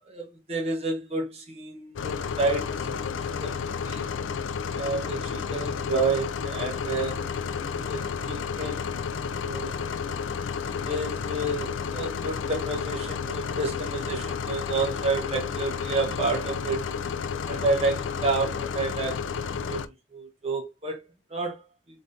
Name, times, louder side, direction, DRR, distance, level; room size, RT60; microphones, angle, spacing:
voice 1, 0.1-4.1 4.7-7.2 7.8-8.9 9.4-9.9 10.8-16.9 17.5-19.2 19.7-21.0 21.3-21.6, right 3 dB, 30° right, 1.1 m, -30 dB
sound 1, 1.9-19.9, left 6 dB, 85° left, 0.4 m, -31 dB
4.0 x 3.5 x 2.6 m
head